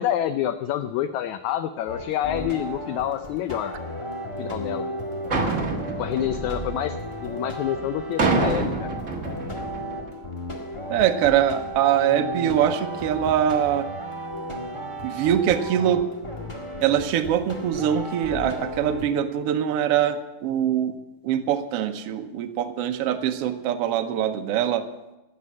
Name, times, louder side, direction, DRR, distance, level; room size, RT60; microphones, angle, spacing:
voice 1, 0.0-3.7 4.4-4.9 6.0-7.0 7.2-8.9, left 11 dB, 80° left, 10 dB, 1.7 m, -27 dB
sound 1, 1.9-19.1, equal, 25° left, 0.6 m, -34 dB
sound 2, 5.3-7.3 8.2-10.1, right 3 dB, 40° right, 1.1 m, -27 dB
voice 2, 10.9-13.9 15.0-16.0 16.8-20.9 21.2-24.9, right 10 dB, 85° right, 7 dB, 1.3 m, -23 dB
17.0 x 7.3 x 8.4 m, 1.0 s
omnidirectional pair, 3.9 m